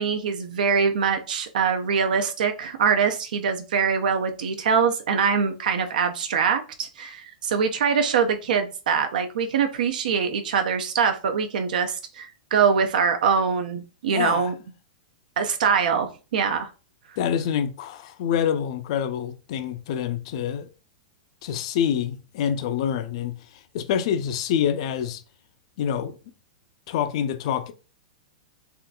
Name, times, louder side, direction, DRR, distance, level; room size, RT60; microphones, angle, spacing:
voice 1, 0.0-14.5 15.4-16.7, right 6 dB, 80° right, 0.4 m, -23 dB
voice 2, 14.1-14.5 17.2-20.7 21.4-25.2 25.8-26.2 26.9-27.7, left 9 dB, 45° left, 0.3 m, -26 dB
3.6 x 2.4 x 2.2 m
supercardioid pair, 170°, 5 cm